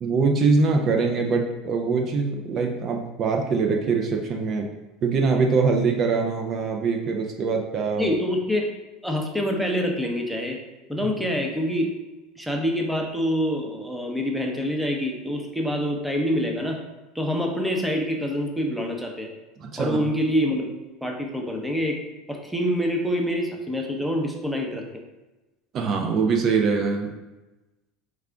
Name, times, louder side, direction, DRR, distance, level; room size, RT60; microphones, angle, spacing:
voice 1, 0.0-4.7 5.0-8.1 11.0-11.1 19.6-20.0 25.7-27.1, right 4 dB, 45° right, 2 dB, 0.5 m, -23 dB
voice 2, 8.0-8.7 9.0-10.6 10.9-11.9 12.4-16.8 17.1-19.3 19.8-20.7 21.0-22.0 22.3-24.8, equal, ahead, 1 dB, 0.7 m, -26 dB
4.8 x 2.4 x 3.4 m, 1.1 s
supercardioid pair, 95°, 0 cm